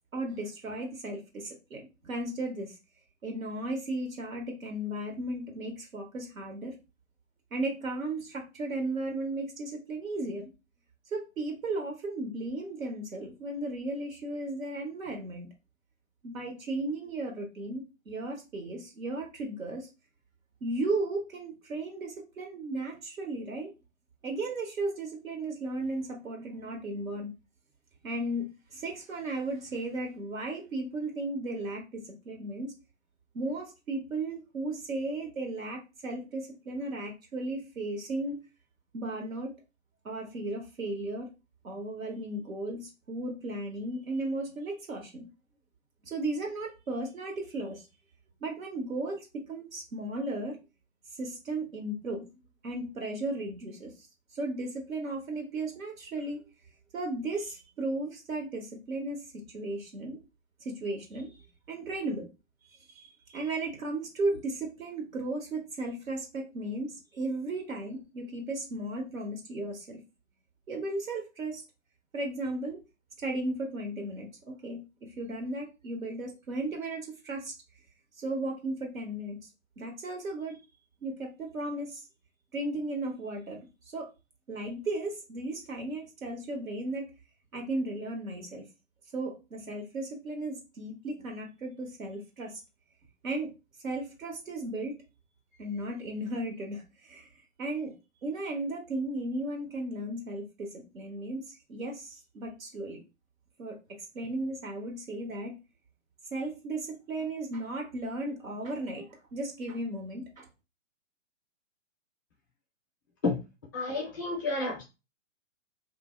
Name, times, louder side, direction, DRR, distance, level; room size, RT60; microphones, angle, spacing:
voice 1, 0.1-2.7 3.2-6.7 7.5-10.5 11.1-15.5 16.2-19.9 20.6-23.7 24.2-27.3 28.0-28.4 28.7-32.7 33.3-38.4 38.9-39.5 40.0-41.3 41.6-45.3 46.0-47.9 48.4-50.6 51.2-52.3 52.6-53.9 54.3-56.4 56.9-60.2 60.6-61.3 61.7-62.3 63.3-70.0 70.7-71.6 72.1-72.8 73.2-74.3 74.6-77.5 78.2-79.4 79.8-80.6 81.0-82.0 82.5-83.6 83.9-84.1 84.5-87.0 87.5-88.6 89.1-92.5 93.2-93.5 93.8-95.0 95.6-97.3 97.6-97.9 98.2-103.0 103.6-103.8 104.1-105.6 106.3-110.5, right 2 dB, 85° right, 1 dB, 1.4 m, -35 dB
voice 2, 113.7-114.8, left 3 dB, 15° left, -1 dB, 0.4 m, -30 dB
2.6 x 2.1 x 3.6 m, 0.28 s
hypercardioid pair, 140°, 40 cm